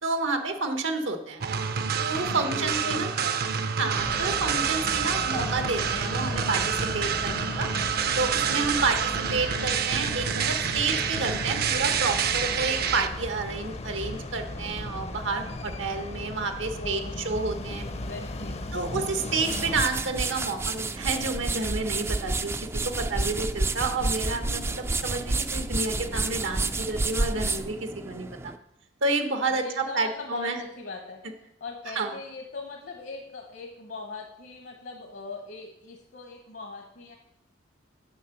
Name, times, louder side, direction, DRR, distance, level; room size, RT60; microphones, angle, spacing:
voice 1, 0.0-1.4 2.0-3.1 3.8-7.7 8.2-9.0 9.3-17.8 18.7-22.6 22.8-28.5 29.0-30.6 31.9-32.1, right 3 dB, 85° right, 7 dB, 1.1 m, -30 dB
sound 1, 1.4-13.1, right 7 dB, 55° right, 0.6 m, -28 dB
voice 2, 2.2-3.5 8.7-8.8 16.8-17.2 17.8-18.7 29.5-31.2 31.6-37.2, left 3 dB, 65° left, 2 dB, 1.1 m, -40 dB
sound 2, 3.9-19.8, left 2 dB, 35° left, 0.6 m, -36 dB
sound 3, 19.2-28.6, right 3 dB, 15° right, 0.3 m, -30 dB
7.4 x 5.8 x 7.0 m, 0.81 s
head